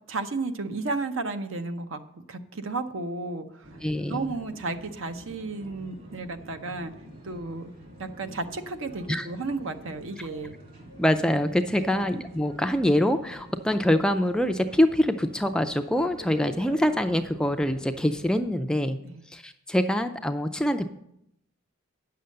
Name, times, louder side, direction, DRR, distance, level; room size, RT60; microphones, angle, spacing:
voice 1, 0.1-3.8 4.1-6.9 7.2-7.7 8.0-10.6 11.7-12.0 19.0-19.2, right 3 dB, 70° right, 8 dB, 0.8 m, -33 dB
sound 1, 3.6-18.4, equal, 45° right, 2.1 m, -47 dB
voice 2, 3.8-4.3 9.1-9.3 11.0-19.0 19.3-20.9, left 1 dB, 5° left, 8 dB, 0.3 m, -25 dB
9.2 x 6.8 x 6.5 m, 0.77 s
head